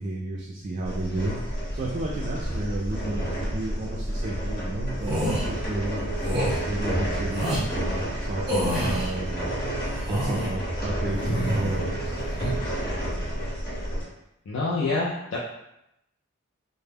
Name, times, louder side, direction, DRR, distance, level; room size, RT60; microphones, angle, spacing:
voice 1, 0.0-1.4 1.7-6.1 6.6-9.6 10.1-12.2, right 2 dB, 40° right, -4 dB, 0.3 m, -32 dB
sound 1, 0.8-14.0, right 1 dB, 45° left, 1.0 m, -30 dB
sound 2, 5.0-5.4 6.2-6.6 7.3-7.6 8.5-9.1 9.8-10.5 11.1-11.8 12.1-12.5, equal, 20° right, 0.8 m, -28 dB
voice 2, 14.5-15.4, left 3 dB, 70° left, -5 dB, 0.4 m, -27 dB
2.2 x 2.0 x 3.3 m, 0.84 s
head